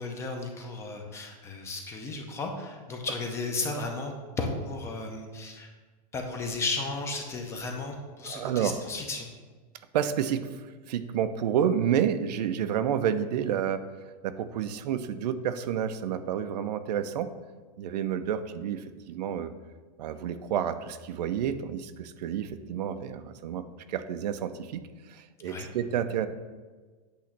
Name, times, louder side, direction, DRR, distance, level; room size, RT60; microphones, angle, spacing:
voice 1, 0.0-5.7 6.1-9.3 25.4-25.7, left 3 dB, 15° left, 3 dB, 0.6 m, -34 dB
voice 2, 8.2-8.8 9.9-13.8 14.2-17.3 17.8-19.5 20.0-26.3, right 9 dB, 75° right, 10 dB, 0.6 m, -30 dB
8.5 x 3.1 x 5.8 m, 1.4 s
supercardioid pair, 165°, 21 cm